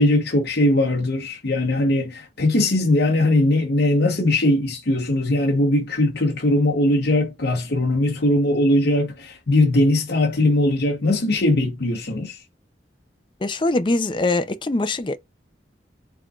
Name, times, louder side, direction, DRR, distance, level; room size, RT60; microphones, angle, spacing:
voice 1, 0.0-12.4, left 1 dB, 65° left, 0.9 m, -20 dB
voice 2, 13.4-15.2, left 2 dB, 25° left, 0.5 m, -22 dB
4.6 x 3.7 x 2.4 m
head